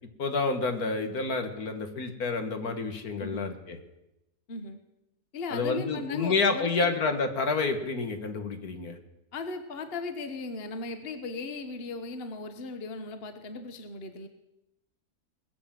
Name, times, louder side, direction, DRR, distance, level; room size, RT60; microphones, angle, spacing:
voice 1, 0.2-3.8 5.5-9.0, left 4 dB, 65° left, 6 dB, 1.9 m, -29 dB
voice 2, 3.2-3.5 4.5-4.8 5.3-6.9 9.3-14.3, left 3 dB, 40° left, 8 dB, 1.3 m, -37 dB
20.5 x 7.8 x 7.5 m, 0.91 s
omnidirectional pair, 1.7 m